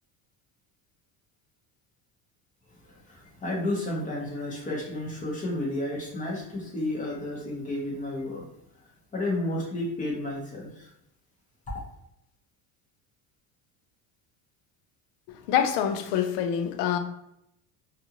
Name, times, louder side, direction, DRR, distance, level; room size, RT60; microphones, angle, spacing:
voice 1, 3.1-8.4 9.1-10.7, left 1 dB, 20° left, 0.8 m, -31 dB
voice 2, 15.5-17.0, left 9 dB, 85° left, 0.5 m, -25 dB
2.5 x 2.5 x 2.8 m
cardioid pair, 155°, 41 cm